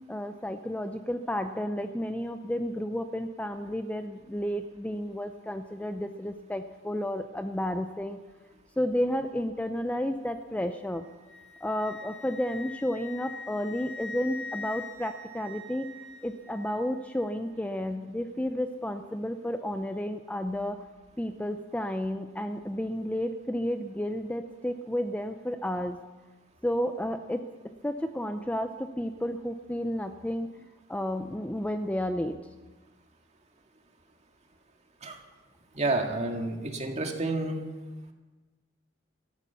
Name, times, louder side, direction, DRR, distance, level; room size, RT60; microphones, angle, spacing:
voice 1, 0.1-8.2 8.8-11.1 11.6-15.9 16.2-20.8 21.2-26.0 26.6-30.5 30.9-32.4, equal, 5° left, 8 dB, 0.5 m, -32 dB
Wind instrument woodwind instrument, 10.8-16.8, left 3 dB, 65° right, 2.0 m, -43 dB
voice 2, 35.7-37.6, right 2 dB, 35° right, 2 dB, 2.0 m, -29 dB
13.5 x 12.5 x 7.0 m, 1.2 s
head